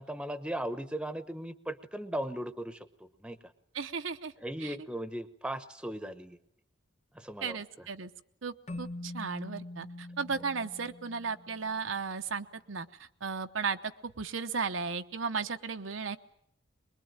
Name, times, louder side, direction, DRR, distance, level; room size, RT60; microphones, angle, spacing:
voice 1, 0.0-3.4 4.4-6.4 7.1-7.9 8.7-8.8, right 1 dB, 5° right, 11 dB, 0.9 m, -38 dB
voice 2, 3.7-4.3 4.6-4.7 7.4-8.1 8.4-12.9 13.2-16.2, right 5 dB, 80° right, 8 dB, 0.9 m, -35 dB
Keyboard (musical), 8.7-11.9, left 1 dB, 35° left, 1.0 m, -44 dB
23.0 x 21.5 x 8.9 m, 0.73 s
head